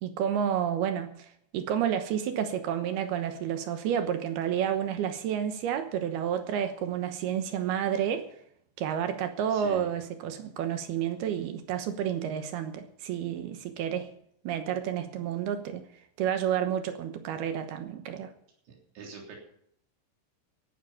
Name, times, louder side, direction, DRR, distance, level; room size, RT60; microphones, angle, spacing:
voice 1, 0.0-1.3 1.5-8.3 8.8-14.1 14.4-15.9 16.2-18.3, right 9 dB, 70° right, 2.8 m, -30 dB
voice 2, 9.5-9.9 18.7-19.4, right 5 dB, 90° right, 5.8 m, -44 dB
17.0 x 11.0 x 5.7 m
omnidirectional pair, 5.1 m